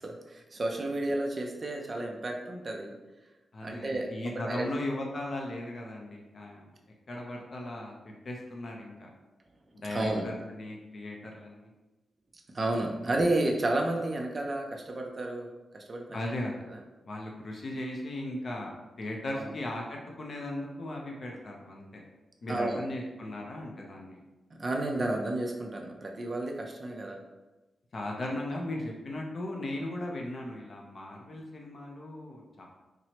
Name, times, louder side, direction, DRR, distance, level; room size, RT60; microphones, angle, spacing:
voice 1, 0.0-3.0 3.6-4.7 9.9-10.3 12.5-16.3 16.7-16.8 19.3-19.5 22.5-22.8 24.5-27.2, right 2 dB, 30° right, 2 dB, 0.4 m, -32 dB
voice 2, 3.5-6.7 7.1-9.1 9.7-11.7 13.0-13.1 16.1-16.5 17.0-22.0 22.4-24.2 27.9-32.7, left 1 dB, 40° left, -1 dB, 0.4 m, -37 dB
4.3 x 2.0 x 2.8 m, 1.1 s
wide cardioid pair, 170°, 0 cm